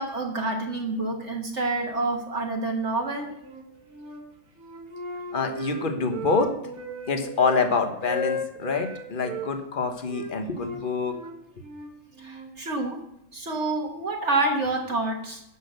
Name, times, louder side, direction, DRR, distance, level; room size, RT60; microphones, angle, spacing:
voice 1, 0.0-3.3 12.2-13.0 13.3-15.4, right 2 dB, 55° right, 1 dB, 1.5 m, -28 dB
sound 1, 2.9-4.1 5.0-8.9, right 4 dB, 75° left, 4.6 m, -47 dB
Wind instrument woodwind instrument, 3.4-4.2 4.6-7.7 8.0-9.5 10.1-12.6, left 1 dB, 75° right, 2.2 m, -35 dB
voice 2, 5.3-6.5 7.1-11.2, left 4 dB, 40° left, 6 dB, 1.3 m, -26 dB
11.0 x 6.4 x 6.7 m, 0.81 s
omnidirectional pair, 1.5 m